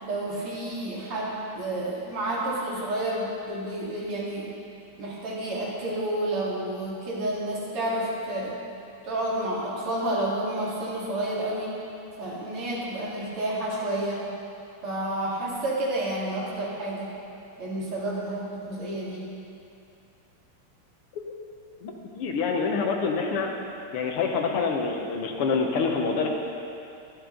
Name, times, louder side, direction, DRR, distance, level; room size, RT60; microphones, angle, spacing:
voice 1, 0.0-4.5 5.0-8.6 9.0-11.7 12.2-14.3 14.8-17.1 17.6-19.3, right 1 dB, 80° right, -6 dB, 3.2 m, -30 dB
voice 2, 21.8-23.5 23.9-26.3, left 5 dB, 85° left, 2 dB, 2.0 m, -26 dB
12.0 x 11.5 x 3.8 m, 2.6 s
omnidirectional pair, 2.4 m